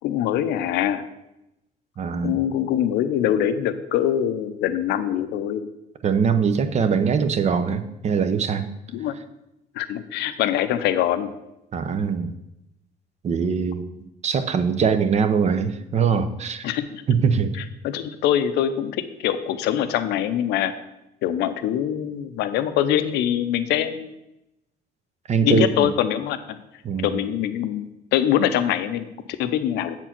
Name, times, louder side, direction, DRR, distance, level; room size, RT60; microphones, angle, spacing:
voice 1, 0.0-1.0 2.2-5.7 8.9-9.2 9.7-11.3 16.6-17.0 17.8-20.7 21.2-24.1 25.4-26.4 27.0-29.1 29.4-30.0, left 10 dB, 85° left, 10 dB, 0.6 m, -23 dB
voice 2, 2.0-2.4 6.0-8.7 11.7-12.3 13.2-13.9 14.2-16.7 17.1-17.6 25.3-25.9 26.8-27.2, right 6 dB, 40° right, 10 dB, 0.7 m, -22 dB
7.9 x 4.5 x 5.9 m, 0.89 s
cardioid pair, 110°, 17 cm